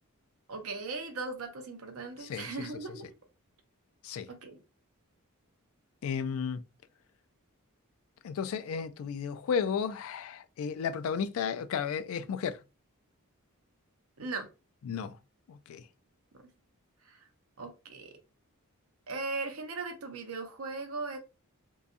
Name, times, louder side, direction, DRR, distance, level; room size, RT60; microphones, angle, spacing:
voice 1, 0.5-3.1 4.3-4.6 14.2-14.5 17.0-17.2 17.6-18.2 19.1-21.2, right 3 dB, 70° right, 0.6 m, -38 dB
voice 2, 2.2-2.7 4.0-4.3 6.0-6.6 8.2-12.6 14.8-15.2 15.5-15.8, left 6 dB, 65° left, 0.3 m, -33 dB
2.7 x 2.2 x 2.5 m
head